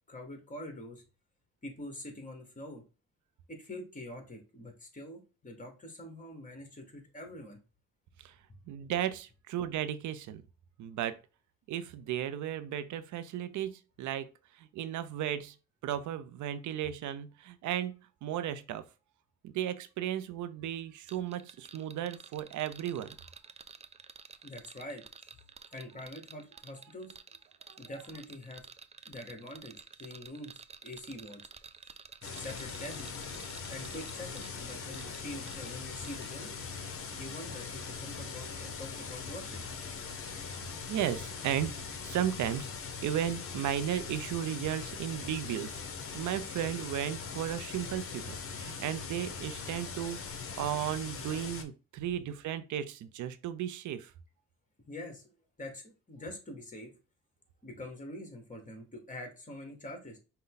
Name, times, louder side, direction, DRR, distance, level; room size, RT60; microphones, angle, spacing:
voice 1, 0.1-1.0 1.6-2.8 3.5-7.6 24.4-25.3 25.7-27.1 27.8-28.6 29.1-29.7 30.0-31.4 31.8-32.0 32.3-33.2 33.7-36.5 37.1-39.6 54.9-55.3 55.6-56.9 57.6-60.2, left 1 dB, 25° left, 1.7 m, -45 dB
voice 2, 8.7-10.4 10.8-11.2 11.7-15.6 15.8-18.8 19.4-23.2 27.7-27.8 40.2-40.4 40.9-41.7 42.0-42.7 43.0-45.8 46.1-50.2 50.6-54.1, right 10 dB, 75° right, 0.6 m, -35 dB
sound 1, 21.1-35.8 36.0-36.3, right 5 dB, 20° right, 0.4 m, -51 dB
sound 2, 32.2-51.6, left 5 dB, 45° left, 0.9 m, -41 dB
5.4 x 2.2 x 3.8 m
cardioid pair, 90°, 30 cm